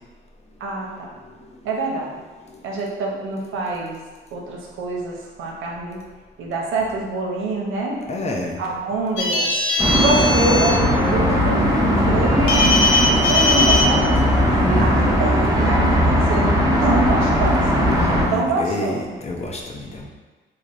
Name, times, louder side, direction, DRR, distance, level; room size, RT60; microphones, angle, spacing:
voice 1, 0.6-1.1 1.6-2.1 2.6-4.0 4.3-6.0 6.4-8.0 8.6-9.5 10.0-11.7 12.1-14.5 14.8-16.5 16.8-17.9 18.3-19.0, right 2 dB, 85° right, -1 dB, 0.7 m, -25 dB
voice 2, 8.1-8.6 14.2-14.3 14.7-14.9 18.0-20.1, left 1 dB, 35° left, -1 dB, 0.6 m, -27 dB
sound 1, 9.2-10.7 12.5-13.8, left 2 dB, 80° left, 0.6 m, -19 dB
sound 2, 9.8-18.2, equal, 15° right, 0.7 m, -18 dB
3.2 x 2.1 x 3.8 m, 1.3 s
cardioid pair, 90°, 20 cm